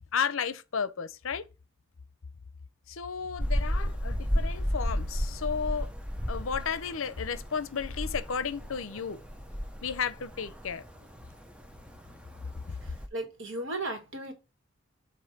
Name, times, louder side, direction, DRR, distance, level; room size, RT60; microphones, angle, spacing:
voice 1, 0.1-1.4 2.9-5.9 6.3-9.2 9.8-10.8, left 6 dB, 75° left, 0.6 m, -33 dB
sound 1, 3.4-13.1, equal, 5° right, 0.5 m, -34 dB
voice 2, 13.1-14.3, right 2 dB, 65° right, 1.5 m, -35 dB
7.9 x 2.6 x 5.9 m
head